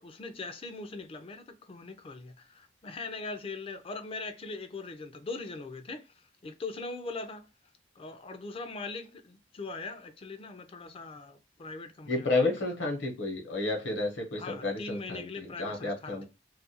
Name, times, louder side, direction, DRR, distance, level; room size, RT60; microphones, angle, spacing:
voice 1, 0.0-7.5 8.0-12.3 14.4-16.3, left 3 dB, 30° left, 0.4 m, -41 dB
voice 2, 12.0-16.3, left 2 dB, 65° left, 0.9 m, -31 dB
2.4 x 2.2 x 2.7 m
head